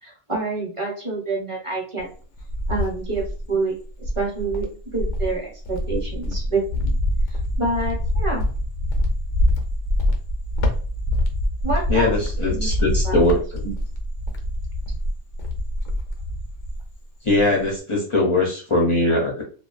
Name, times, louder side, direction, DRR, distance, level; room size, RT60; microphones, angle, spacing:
voice 1, 0.0-2.1 2.7-3.8 4.1-6.9 7.6-8.5 11.6-12.1 12.5-12.8 13.0-13.2 13.6-13.7, right 3 dB, 30° right, -2 dB, 0.7 m, -27 dB
Cricket, 2.0-3.5 4.0-16.9 17.2-17.8, left 1 dB, 85° left, 0.9 m, -25 dB
voice 2, 11.9-13.6 17.2-19.4, left 2 dB, 40° left, -2 dB, 0.4 m, -21 dB
2.3 x 2.2 x 2.4 m, 0.40 s
omnidirectional pair, 1.2 m